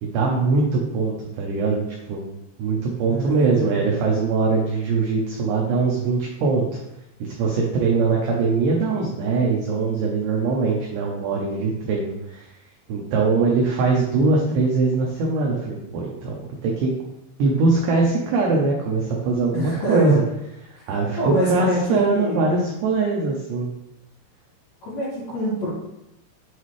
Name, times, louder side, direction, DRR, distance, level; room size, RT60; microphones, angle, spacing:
voice 1, 0.0-2.2 2.6-6.8 7.2-12.5 12.9-16.9 17.4-20.2 20.7-23.7, right 4 dB, 85° right, -2 dB, 2.4 m, -22 dB
voice 2, 3.1-3.7 19.5-20.2 20.7-20.8 21.2-22.6 24.8-25.7, right 1 dB, 50° left, -12 dB, 3.1 m, -25 dB
8.1 x 4.2 x 3.2 m, 0.86 s
omnidirectional pair, 5.9 m